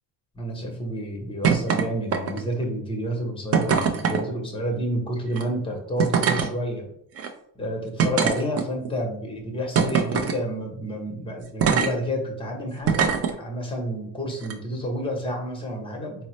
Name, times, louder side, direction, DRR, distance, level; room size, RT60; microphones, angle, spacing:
voice 1, 0.3-6.9 7.6-16.3, equal, 10° left, 2 dB, 0.8 m, -30 dB
sound 1, 1.4-1.8 2.1-2.6 3.5-4.2 5.3-5.4 6.0-6.5 7.2-7.3 8.0-8.9 9.7-10.4 11.6-11.9 12.8-13.3 14.4-14.5, right 6 dB, 35° right, 0.4 m, -22 dB
3.8 x 2.0 x 3.0 m, 0.72 s
cardioid pair, 100°, 46 cm